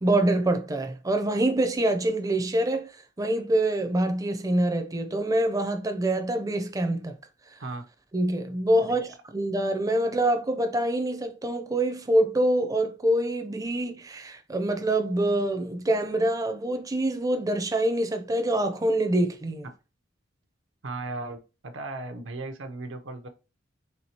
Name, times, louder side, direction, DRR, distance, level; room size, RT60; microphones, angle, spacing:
voice 1, 0.0-7.1 8.1-19.7, right 1 dB, 20° right, 0.5 m, -25 dB
voice 2, 20.8-23.3, right 2 dB, 75° right, 0.6 m, -36 dB
4.5 x 3.6 x 2.8 m
head